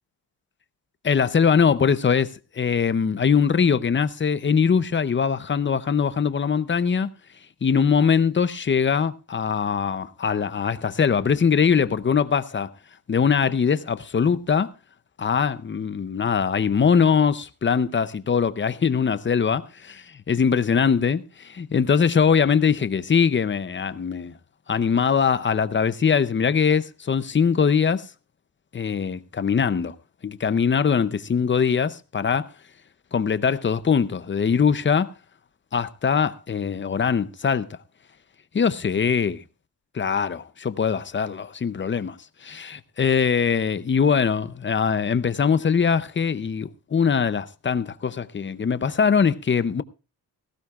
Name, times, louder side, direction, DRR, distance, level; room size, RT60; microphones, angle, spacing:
voice 1, 1.0-7.1 7.6-12.7 13.1-14.7 15.2-24.3 24.7-28.1 28.7-30.0 30.2-32.5 33.1-35.1 35.7-37.7 38.5-39.4 39.9-42.2 42.4-49.8, left 6 dB, 30° left, 0.6 m, -22 dB
18.5 x 15.5 x 2.4 m
wide cardioid pair, 145°, 42 cm